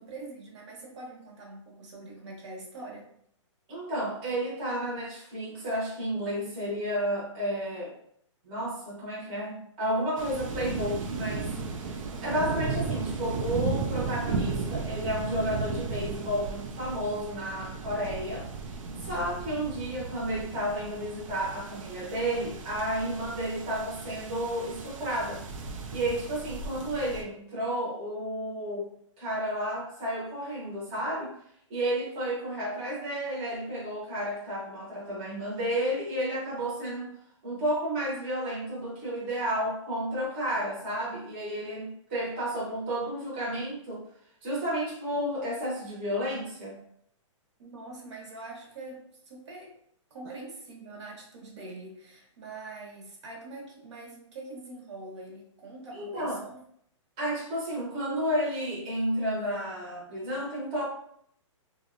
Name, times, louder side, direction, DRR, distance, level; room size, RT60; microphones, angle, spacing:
voice 1, 0.0-3.1 47.6-49.8 50.1-56.6, right 2 dB, 60° right, -1 dB, 0.8 m, -44 dB
voice 2, 3.7-8.0 8.4-28.9 29.2-31.3 31.7-37.1 37.4-44.0 44.4-46.8 55.9-56.4 57.2-60.8, equal, 20° right, -6 dB, 0.6 m, -32 dB
sound 1, 10.2-27.2, right 4 dB, 85° right, 0.5 m, -35 dB
2.7 x 2.0 x 2.4 m, 0.68 s
hypercardioid pair, 170°, 16 cm